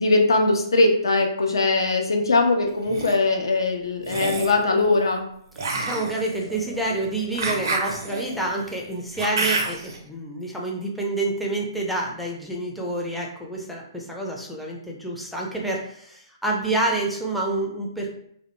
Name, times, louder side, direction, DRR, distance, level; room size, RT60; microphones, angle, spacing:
voice 1, 0.0-5.2, left 3 dB, 70° left, 2 dB, 0.5 m, -21 dB
sound 1, 2.7-3.1 4.0-4.6 5.6-10.0, right 3 dB, 55° right, 0.5 m, -29 dB
voice 2, 5.7-18.1, right 2 dB, ahead, -3 dB, 0.4 m, -28 dB
2.2 x 2.1 x 2.9 m, 0.68 s
figure-of-eight pair, 130°, 2 cm